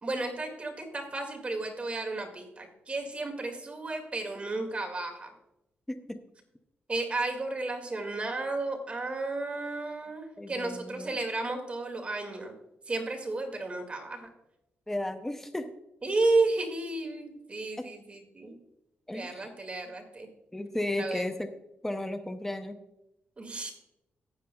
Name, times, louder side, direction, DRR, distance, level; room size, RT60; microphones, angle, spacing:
voice 1, 0.0-5.3 6.9-12.5 12.9-14.3 16.0-18.5 19.1-20.3 21.0-21.2 23.4-23.7, right 2 dB, 30° right, 3 dB, 2.0 m, -32 dB
voice 2, 5.9-6.2 10.4-11.2 14.9-15.7 17.8-17.9 19.1-19.5 20.5-21.5 21.8-22.8, left 1 dB, 10° left, 7 dB, 0.7 m, -34 dB
15.0 x 9.8 x 2.3 m, 0.86 s
cardioid pair, 115°, 4 cm